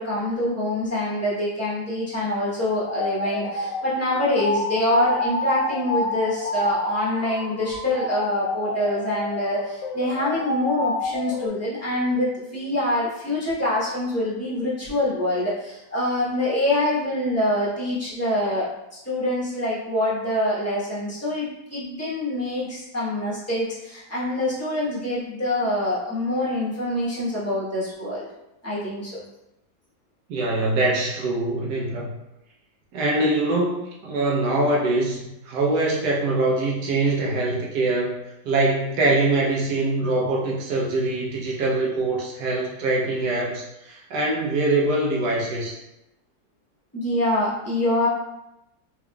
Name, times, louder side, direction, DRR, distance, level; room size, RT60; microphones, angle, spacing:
voice 1, 0.0-28.3 28.6-29.2 46.9-48.1, left 1 dB, 10° left, -9 dB, 1.0 m, -25 dB
sound 1, 2.8-11.5, left 2 dB, 75° left, 1.1 m, -29 dB
voice 2, 30.3-32.1 32.9-38.2 38.4-45.7, right 2 dB, 75° right, -3 dB, 1.3 m, -23 dB
3.5 x 3.5 x 2.3 m, 0.89 s
omnidirectional pair, 1.8 m